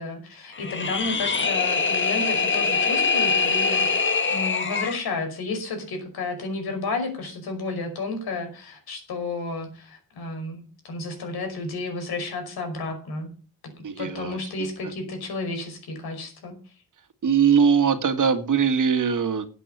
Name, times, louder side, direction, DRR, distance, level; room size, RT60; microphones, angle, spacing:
voice 1, 0.0-13.3 14.0-16.6, left 3 dB, 80° left, 5 dB, 5.4 m, -32 dB
sound 1, 0.5-5.0, left 4 dB, 30° left, 1.6 m, -23 dB
voice 2, 13.8-14.7 17.2-19.5, right 6 dB, 55° right, 8 dB, 1.9 m, -21 dB
12.5 x 8.4 x 6.9 m, 0.39 s
cardioid pair, 90°, 37 cm